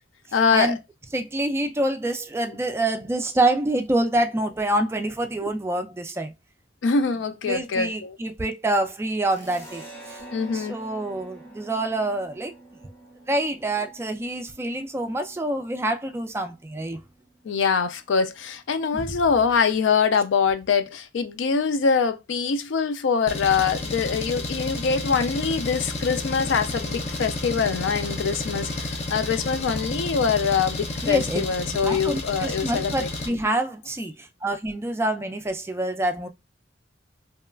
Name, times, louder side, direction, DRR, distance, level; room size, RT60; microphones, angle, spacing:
voice 1, 0.3-0.8 6.8-8.2 10.3-10.8 17.4-33.4, left 5 dB, 85° left, 0.4 m, -24 dB
voice 2, 1.1-6.3 7.5-10.2 10.5-12.6 13.3-17.0 18.9-19.1 31.0-31.5 31.8-36.3, right 1 dB, 15° right, 0.3 m, -26 dB
sound 1, 9.3-16.5, right 1 dB, 15° left, 1.0 m, -48 dB
Bass guitar, 10.2-19.6, right 2 dB, 50° left, 1.2 m, -52 dB
Engine, 23.3-33.3, left 2 dB, 35° left, 0.5 m, -31 dB
2.9 x 2.2 x 2.3 m
head